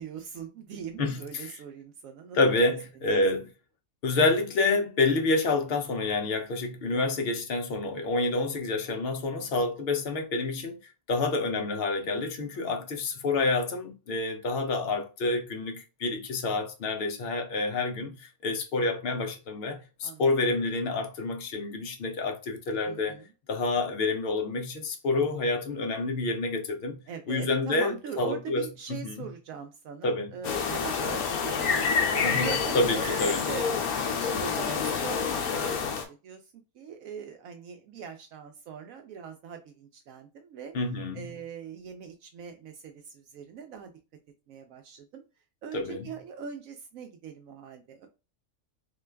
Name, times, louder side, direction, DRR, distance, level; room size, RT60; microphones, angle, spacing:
voice 1, 0.0-2.6 3.1-3.2 12.5-12.8 20.0-20.3 22.8-23.3 27.1-36.4 36.7-40.7 41.1-43.9 44.5-45.2 45.6-48.1, right 6 dB, 70° right, 0.9 m, -41 dB
voice 2, 1.0-1.5 2.3-3.5 4.0-10.8 11.1-23.2 23.5-27.0 27.3-29.3 30.0-30.3 32.2-33.4 40.7-41.3 45.7-46.1, left 3 dB, 55° left, 0.7 m, -28 dB
sound 1, 30.4-36.0, left 6 dB, 75° left, 1.2 m, -28 dB
3.7 x 2.3 x 3.3 m
omnidirectional pair, 1.6 m